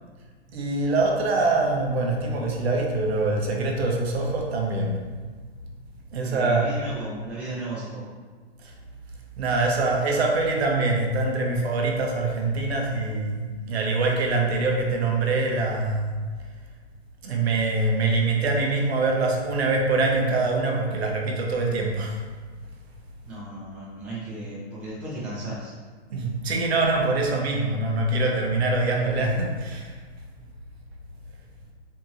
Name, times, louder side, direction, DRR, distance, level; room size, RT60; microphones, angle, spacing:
voice 1, 0.5-5.0 6.1-6.8 8.6-8.7 9.4-16.2 17.2-22.2 26.1-30.0, right 3 dB, 70° right, 0 dB, 0.7 m, -24 dB
voice 2, 6.2-8.0 23.3-25.7, right 2 dB, 5° right, -10 dB, 0.4 m, -35 dB
2.8 x 2.7 x 2.4 m, 1.4 s
hypercardioid pair, 135°, 33 cm